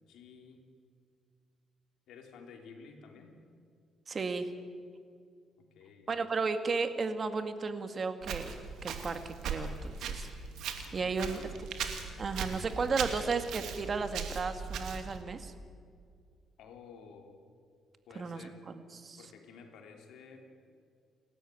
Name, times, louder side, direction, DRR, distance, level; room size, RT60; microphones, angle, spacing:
voice 1, 0.1-0.6 2.1-3.4 5.6-6.1 11.0-11.7 16.6-17.4 18.1-18.6 19.2-20.5, left 5 dB, 80° left, 3 dB, 3.5 m, -52 dB
voice 2, 4.1-4.5 6.1-8.5 8.8-10.3 10.9-11.4 12.2-15.5 18.2-19.2, right 4 dB, 40° right, 8 dB, 2.0 m, -34 dB
Walk footsteps, 8.2-15.2, right 6 dB, 80° right, 2.5 m, -39 dB
29.0 x 13.0 x 9.3 m, 2.3 s
cardioid pair, 90°, 0 cm